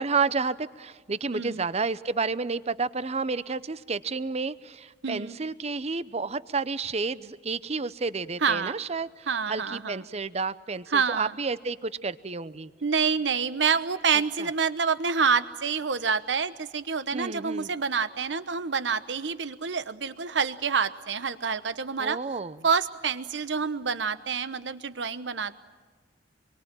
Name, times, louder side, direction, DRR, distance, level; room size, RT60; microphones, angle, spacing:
voice 1, 0.0-12.7 14.1-14.5 17.1-17.7 22.0-22.6, right 4 dB, 35° right, 16 dB, 0.7 m, -31 dB
voice 2, 1.3-1.6 5.0-5.4 8.4-8.7 9.3-10.0 10.9-11.3 12.8-22.2 22.6-25.5, right 5 dB, 75° right, 13 dB, 1.0 m, -27 dB
26.5 x 23.5 x 9.0 m, 1.4 s
head